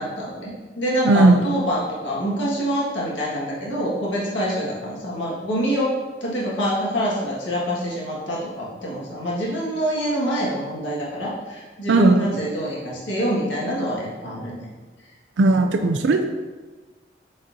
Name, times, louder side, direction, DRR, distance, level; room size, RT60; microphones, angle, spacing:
voice 1, 0.0-5.9 6.2-14.6, equal, 85° left, -5 dB, 1.7 m, -26 dB
voice 2, 1.0-1.4 11.9-12.3 15.4-16.2, right 2 dB, 75° right, 5 dB, 0.4 m, -16 dB
8.5 x 4.2 x 2.7 m, 1.3 s
head